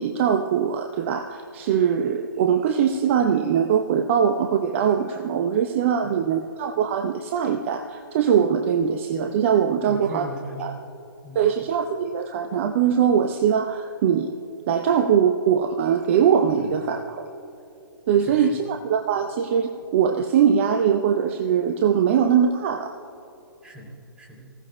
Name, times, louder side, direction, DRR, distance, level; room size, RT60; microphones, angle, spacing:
voice 1, 0.0-10.3 10.6-10.7 11.3-14.3 14.7-17.3 18.1-22.9, right 8 dB, 30° right, 5 dB, 0.7 m, -22 dB
voice 2, 9.9-10.9 11.2-11.5 16.5-16.7 18.3-18.5 23.6-24.5, right 1 dB, 10° right, -2 dB, 3.0 m, -39 dB
24.5 x 16.0 x 2.2 m, 2.8 s
figure-of-eight pair, 130°, 12 cm